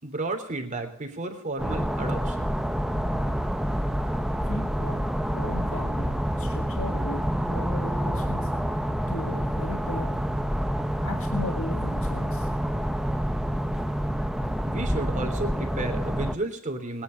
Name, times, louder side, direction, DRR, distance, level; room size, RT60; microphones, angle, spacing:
voice 1, 0.0-2.6 14.6-17.0, right 2 dB, 35° right, 4 dB, 3.3 m, -32 dB
sound 1, 1.6-16.4, equal, ahead, 0.7 m, -27 dB
voice 2, 4.5-8.5 9.1-10.3 11.0-12.5, left 2 dB, 65° left, 5 dB, 1.8 m, -37 dB
22.0 x 10.5 x 5.2 m, 0.69 s
head